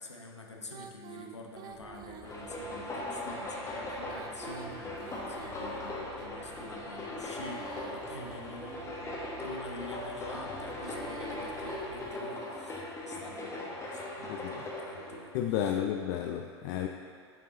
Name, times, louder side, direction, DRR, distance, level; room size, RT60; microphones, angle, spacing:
voice 1, 0.0-15.8, left 1 dB, 85° left, 1 dB, 0.8 m, -47 dB
Female singing, 0.7-2.8 3.9-6.3 7.0-9.2 10.5-12.7, right 7 dB, 30° right, 0.4 m, -49 dB
sound 1, 1.7-12.1, left 1 dB, 15° right, 1.4 m, -55 dB
sound 2, 2.2-15.2, left 1 dB, 20° left, 1.4 m, -39 dB
voice 2, 15.3-16.9, left 10 dB, 45° left, 4 dB, 0.4 m, -32 dB
7.6 x 5.2 x 3.9 m, 2.3 s
figure-of-eight pair, 85°, 14 cm